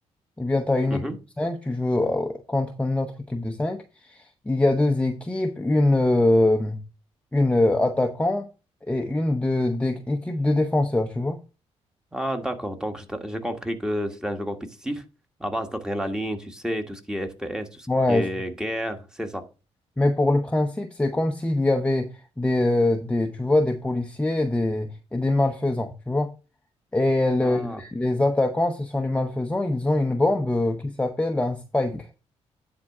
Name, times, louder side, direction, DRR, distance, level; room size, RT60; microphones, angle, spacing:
voice 1, 0.4-1.0 1.4-6.8 7.3-8.5 8.9-11.4 17.9-18.3 20.0-26.3 26.9-32.1, left 2 dB, 10° left, 0.8 m, -23 dB
voice 2, 12.1-15.0 15.4-19.4 27.4-27.8, equal, 5° right, 1.5 m, -30 dB
10.0 x 3.7 x 5.9 m
cardioid pair, 90°, 12 cm